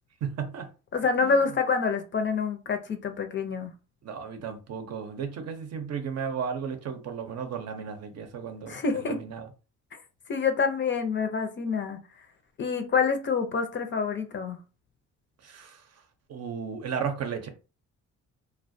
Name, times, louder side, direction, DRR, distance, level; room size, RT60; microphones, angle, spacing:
voice 1, 0.2-0.7 1.2-1.5 4.0-9.5 15.4-16.0 16.3-17.5, right 6 dB, 55° right, 0.6 m, -34 dB
voice 2, 0.9-3.7 8.7-9.2 9.9-10.0 10.3-12.0 12.6-14.6, left 5 dB, 40° left, 0.5 m, -27 dB
2.3 x 2.1 x 2.5 m
cardioid pair, 90°, 30 cm